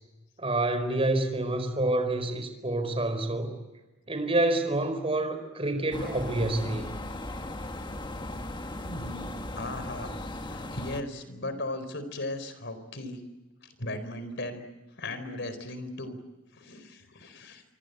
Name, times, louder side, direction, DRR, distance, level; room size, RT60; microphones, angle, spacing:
voice 1, 0.4-3.6 4.1-6.9, right 2 dB, 30° right, 8 dB, 4.6 m, -28 dB
sound 1, 5.9-11.0, left 1 dB, 25° left, 1.5 m, -37 dB
voice 2, 8.8-10.2 10.5-13.2 13.6-14.7 15.0-16.2 16.5-17.6, left 1 dB, 60° left, 11 dB, 4.4 m, -37 dB
28.0 x 25.0 x 8.2 m, 1.1 s
head